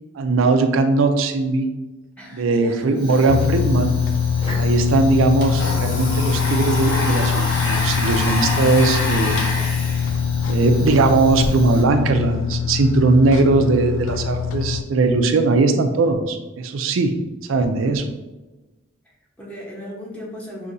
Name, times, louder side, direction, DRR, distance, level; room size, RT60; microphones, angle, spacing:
voice 1, 0.2-1.7 2.3-3.9 4.5-9.4 10.5-17.1 17.5-18.1, right 3 dB, 75° right, 6 dB, 0.4 m, -19 dB
voice 2, 2.2-3.1 19.0-20.7, equal, 5° left, -4 dB, 0.9 m, -37 dB
Fire, 2.9-12.2, left 1 dB, 30° left, 1.4 m, -39 dB
sound 1, 3.3-14.8, left 7 dB, 75° left, 0.4 m, -23 dB
Domestic sounds home sounds, 5.3-11.5, left 1 dB, 60° left, 0.9 m, -27 dB
6.7 x 2.7 x 2.6 m, 1.1 s
head